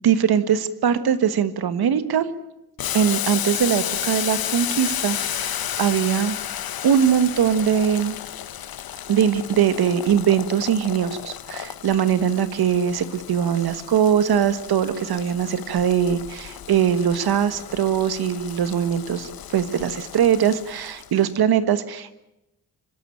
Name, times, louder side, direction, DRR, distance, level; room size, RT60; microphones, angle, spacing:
voice 1, 0.0-2.3 2.9-6.4 6.8-8.2 9.1-22.2, right 8 dB, 85° right, 13 dB, 1.5 m, -21 dB
Boiling, 2.8-21.2, left 11 dB, 70° left, 0.9 m, -32 dB
26.5 x 13.0 x 9.1 m, 0.89 s
wide cardioid pair, 125°, 37 cm